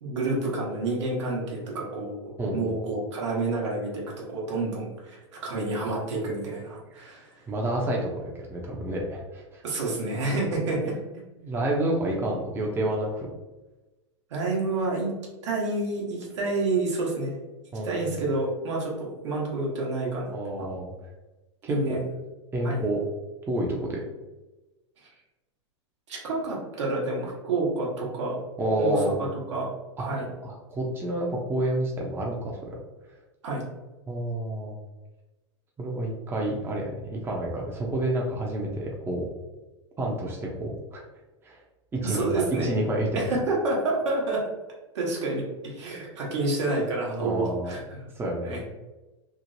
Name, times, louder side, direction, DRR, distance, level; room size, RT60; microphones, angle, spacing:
voice 1, 0.0-7.5 9.6-10.9 14.3-15.1 15.4-17.3 17.8-20.7 21.7-22.0 22.6-22.8 25.0-25.1 26.1-28.4 28.8-29.7 30.0-30.3 33.4-33.6 42.0-42.7 43.1-44.4 44.9-48.0 48.4-48.6, right 2 dB, 75° right, -3 dB, 1.1 m, -29 dB
voice 2, 2.4-2.8 7.5-9.6 11.4-13.3 17.7-18.2 20.3-20.9 21.6-22.0 22.5-23.0 23.5-24.0 28.6-29.2 30.0-30.1 30.4-32.6 34.1-34.8 35.8-39.3 40.0-41.0 41.4-41.6 41.9-43.3 47.2-47.8 48.2-48.6, right 1 dB, 15° right, -2 dB, 0.5 m, -29 dB
3.1 x 2.0 x 2.6 m, 1.1 s
hypercardioid pair, 105°, 15 cm